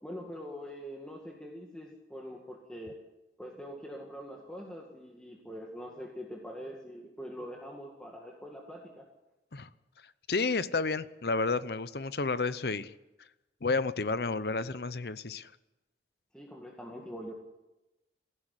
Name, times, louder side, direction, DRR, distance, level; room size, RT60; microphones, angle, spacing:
voice 1, 0.0-3.0 3.4-9.0 16.3-17.3, equal, 5° left, -1 dB, 2.0 m, -43 dB
voice 2, 10.3-12.9 13.6-15.5, left 3 dB, 65° left, 15 dB, 0.7 m, -31 dB
18.0 x 15.5 x 9.8 m, 1.0 s
head